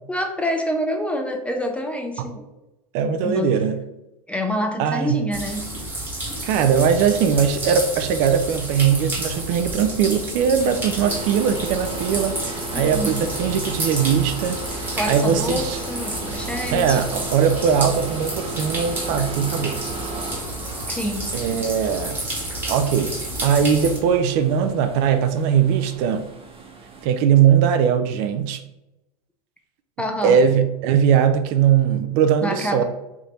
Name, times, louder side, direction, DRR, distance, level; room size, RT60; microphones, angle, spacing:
voice 1, 0.1-2.5 3.2-3.5 4.3-5.7 12.7-13.2 15.0-17.0 20.9-21.3 30.0-30.4 32.4-32.8, equal, 5° left, 4 dB, 0.4 m, -27 dB
voice 2, 2.9-3.8 4.8-5.2 6.4-15.8 16.7-19.8 21.3-22.2 22.7-23.1 23.4-26.3 27.0-28.6 30.2-32.8, right 7 dB, 50° right, 9 dB, 0.4 m, -20 dB
sound 1, 5.3-24.0, right 1 dB, 10° right, 1.1 m, -30 dB
sound 2, 10.6-21.3, left 3 dB, 90° left, 0.8 m, -44 dB
sound 3, 11.0-27.0, right 3 dB, 30° right, 0.9 m, -36 dB
3.5 x 2.5 x 4.1 m, 0.94 s
hypercardioid pair, 115°, 20 cm